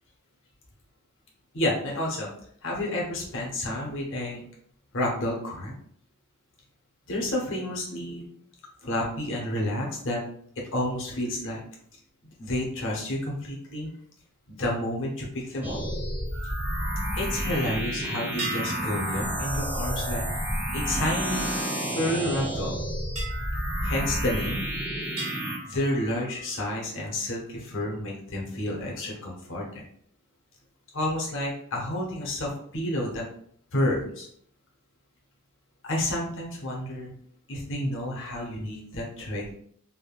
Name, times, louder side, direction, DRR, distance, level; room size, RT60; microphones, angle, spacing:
voice 1, 1.5-2.3 2.6-4.4 4.9-5.7 7.1-8.2 8.8-10.2 10.7-11.6 12.4-13.9 14.5-15.8 17.1-20.2 20.7-21.5 21.9-22.8 23.8-24.6 25.7-29.8 30.9-33.2 33.7-34.3 35.8-37.1 37.5-39.5, left 1 dB, 60° left, -2 dB, 0.8 m, -30 dB
sound 1, 15.6-25.6, right 1 dB, 10° right, 0.3 m, -30 dB
sound 2, 18.4-22.1 23.1-24.7 25.2-26.8, right 2 dB, 30° right, 1.1 m, -40 dB
3.4 x 2.1 x 2.3 m, 0.63 s
head